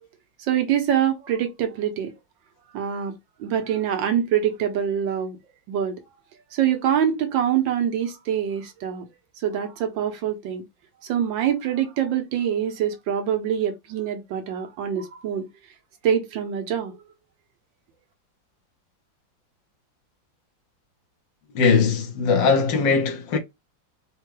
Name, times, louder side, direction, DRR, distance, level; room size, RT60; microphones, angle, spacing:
voice 1, 0.4-2.1 2.7-3.1 3.4-5.4 5.7-6.0 6.5-9.1 9.4-10.6 11.0-15.5 16.0-17.0, right 9 dB, 80° right, 1.6 m, -25 dB
voice 2, 21.5-23.4, left 5 dB, 75° left, 1.5 m, -20 dB
4.6 x 2.2 x 3.1 m
omnidirectional pair, 2.0 m